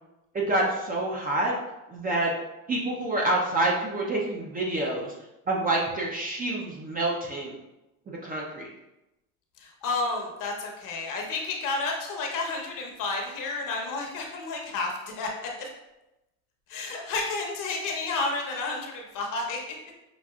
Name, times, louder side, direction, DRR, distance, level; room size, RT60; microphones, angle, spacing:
voice 1, 0.3-1.5 1.9-2.3 2.7-5.1 5.5-7.6 8.2-8.7, right 2 dB, 20° right, -2 dB, 0.5 m, -27 dB
voice 2, 9.6-15.7 16.7-19.8, left 3 dB, 45° left, 1 dB, 1.0 m, -31 dB
5.8 x 2.5 x 2.3 m, 0.95 s
supercardioid pair, 115°, 43 cm